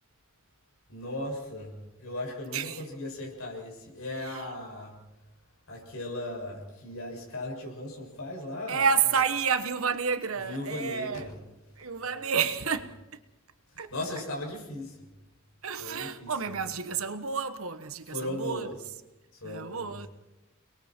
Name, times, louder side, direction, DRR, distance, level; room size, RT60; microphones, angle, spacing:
voice 1, 0.9-5.0 5.7-9.2 10.3-11.4 12.0-12.4 13.7-15.0 15.8-16.6 18.1-18.7 19.4-20.0, left 1 dB, 80° left, 6.9 m, -37 dB
voice 2, 8.7-11.3 11.8-12.9 13.8-13.9 15.6-18.7 19.4-20.1, right 6 dB, 80° right, 1.3 m, -30 dB
29.5 x 21.5 x 4.5 m
head